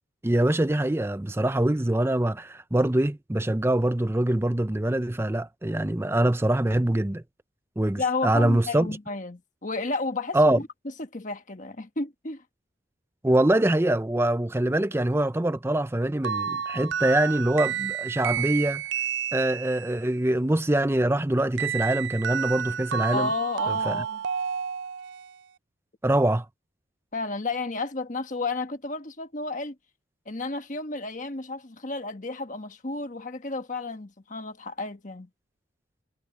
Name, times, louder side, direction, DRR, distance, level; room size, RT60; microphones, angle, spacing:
voice 1, 0.2-7.2 7.8-8.9 10.3-10.6 13.2-18.8 19.3-23.3 23.7-24.0 26.0-26.5, right 1 dB, 10° right, 0.5 m, -24 dB
voice 2, 8.0-10.7 11.0-12.4 23.1-24.2 27.1-29.8 30.3-35.3, left 3 dB, 40° left, 1.3 m, -32 dB
sound 1, 16.2-20.0 21.6-25.3, right 8 dB, 65° right, 0.4 m, -30 dB
head